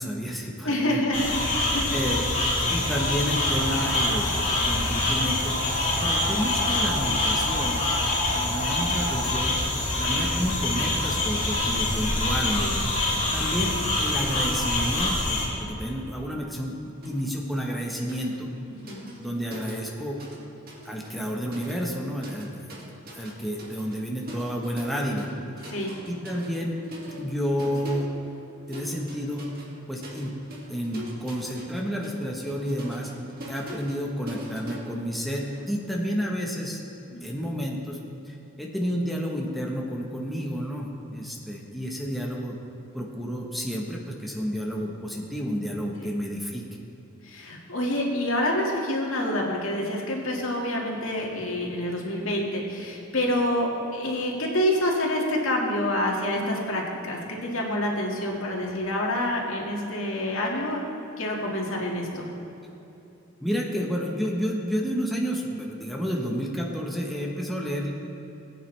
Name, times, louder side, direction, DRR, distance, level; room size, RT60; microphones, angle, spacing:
voice 1, 0.0-1.0 1.9-2.2 2.7-5.5 6.0-7.8 8.4-9.6 10.0-12.8 13.3-13.7 14.0-16.7 17.0-18.5 19.2-20.2 20.8-25.3 26.1-26.7 27.2-28.1 28.7-29.4 29.9-30.3 30.7-33.1 33.5-36.8 37.2-38.0 38.3-42.6 42.9-46.6 63.4-67.9, equal, ahead, -2 dB, 1.1 m, -30 dB
voice 2, 0.6-1.3 1.7-2.0 12.6-12.8 18.8-19.1 25.7-25.9 37.1-37.2 46.0-46.1 47.2-60.8 61.2-62.3, left 1 dB, 75° left, -2 dB, 2.1 m, -27 dB
sound 1, 1.1-15.5, left 2 dB, 40° left, 2.9 m, -25 dB
sound 2, 17.0-17.3 17.6-20.4 20.7-35.6, equal, 45° right, 2.0 m, -43 dB
19.0 x 9.2 x 3.3 m, 3.0 s
head